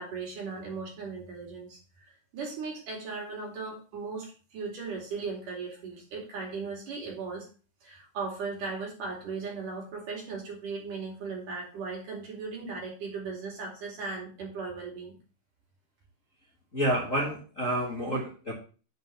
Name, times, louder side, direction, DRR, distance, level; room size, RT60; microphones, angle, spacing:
voice 1, 0.0-7.5 7.8-15.1, right 4 dB, 65° right, -2 dB, 4.7 m, -37 dB
voice 2, 16.7-18.5, right 1 dB, 30° left, -4 dB, 1.9 m, -29 dB
7.9 x 4.6 x 6.9 m, 0.37 s
omnidirectional pair, 4.0 m